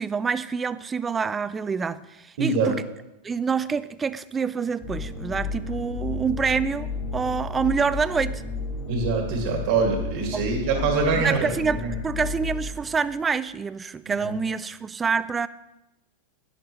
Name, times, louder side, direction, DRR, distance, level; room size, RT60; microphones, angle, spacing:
voice 1, 0.0-2.8 3.2-8.4 10.3-10.4 10.7-10.8 11.2-15.5, right 5 dB, 15° right, 16 dB, 0.3 m, -27 dB
voice 2, 2.4-2.7 8.9-11.9 14.2-14.3, right 4 dB, 60° right, 2 dB, 1.8 m, -24 dB
sound 1, 4.8-13.1, left 4 dB, 30° left, 2.0 m, -32 dB
11.5 x 10.0 x 3.2 m, 0.91 s
supercardioid pair, 150°, 0 cm